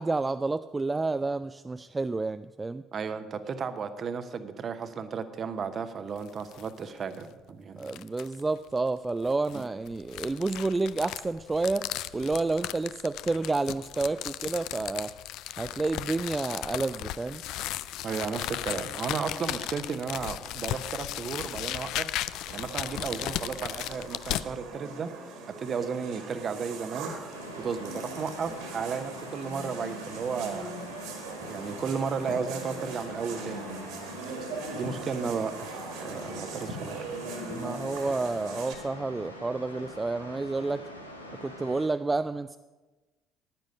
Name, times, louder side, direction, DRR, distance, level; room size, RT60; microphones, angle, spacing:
voice 1, 0.0-2.8 7.8-15.1 15.6-17.4 36.1-36.3 37.5-40.8 41.4-42.6, right 3 dB, 20° right, 11 dB, 0.3 m, -30 dB
voice 2, 2.9-8.0 9.5-9.6 18.0-22.1 22.5-25.1 25.6-27.1 27.6-30.8 31.4-34.3 34.7-37.0, right 6 dB, 40° right, 11 dB, 0.9 m, -34 dB
sound 1, 6.2-6.7 7.1-7.2 7.8-8.4 9.2-24.5, left 14 dB, 60° left, 0.4 m, -36 dB
sound 2, 22.4-38.7, right 3 dB, 60° right, 1.8 m, -40 dB
sound 3, 27.3-41.9, left 1 dB, 90° left, 0.9 m, -45 dB
10.5 x 9.8 x 5.4 m, 1.2 s
figure-of-eight pair, 55°, 0 cm